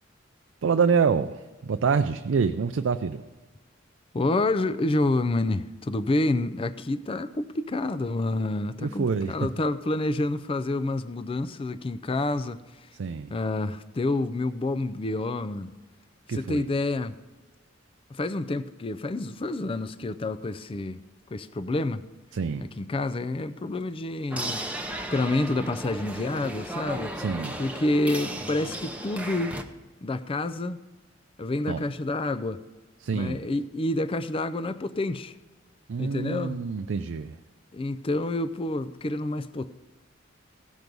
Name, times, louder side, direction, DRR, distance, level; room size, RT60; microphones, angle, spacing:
voice 1, 0.6-3.2 8.8-9.5 13.0-13.3 16.3-16.7 22.3-22.7 27.2-27.6 31.7-31.8 33.0-33.4 35.9-37.4, right 5 dB, 75° right, 0.4 m, -26 dB
voice 2, 4.1-12.6 13.3-15.7 16.3-17.2 18.1-21.0 21.3-22.1 22.6-24.6 25.1-27.2 27.6-29.6 30.0-30.8 31.4-32.6 33.1-35.3 36.0-36.6 37.7-39.7, left 2 dB, 30° left, 0.4 m, -28 dB
sound 1, 24.3-29.6, right 1 dB, 5° right, 0.8 m, -35 dB
16.5 x 6.2 x 5.2 m
head